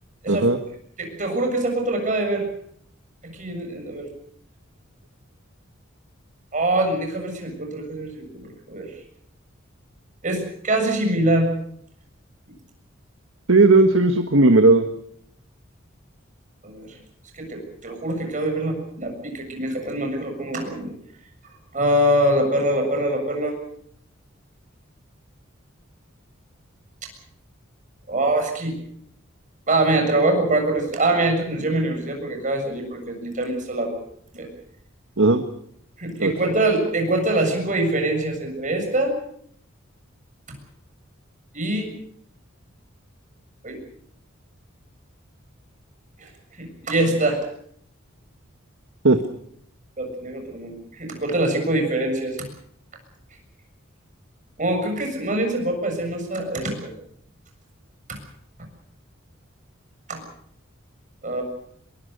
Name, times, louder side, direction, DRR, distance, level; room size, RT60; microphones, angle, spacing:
voice 1, 0.3-0.6 13.5-14.9 35.2-35.4 36.2-36.3 49.0-49.2, right 2 dB, 75° right, 7 dB, 1.5 m, -15 dB
voice 2, 1.0-2.5 3.2-4.1 6.5-8.9 10.2-11.5 16.6-16.9 17.3-20.9 21.7-23.6 28.1-28.8 29.7-33.9 34.3-34.5 36.0-39.2 41.5-41.9 43.6-43.8 46.2-46.3 46.6-47.4 50.0-52.4 54.6-56.9 58.1-58.2 60.1-60.2 61.2-61.4, right 1 dB, 40° right, 3 dB, 7.1 m, -24 dB
22.5 x 22.0 x 6.8 m, 0.68 s
head